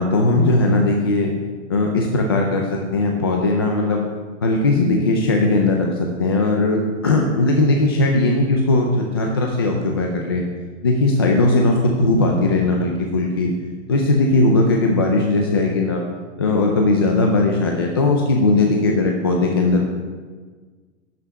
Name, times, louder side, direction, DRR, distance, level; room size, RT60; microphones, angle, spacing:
voice 1, 0.0-1.3 1.7-4.1 4.4-10.4 10.8-13.5 13.9-16.0 16.4-19.9, left 2 dB, 20° left, 0 dB, 0.4 m, -18 dB
12.0 x 6.0 x 8.0 m, 1.5 s
hypercardioid pair, 175°, 38 cm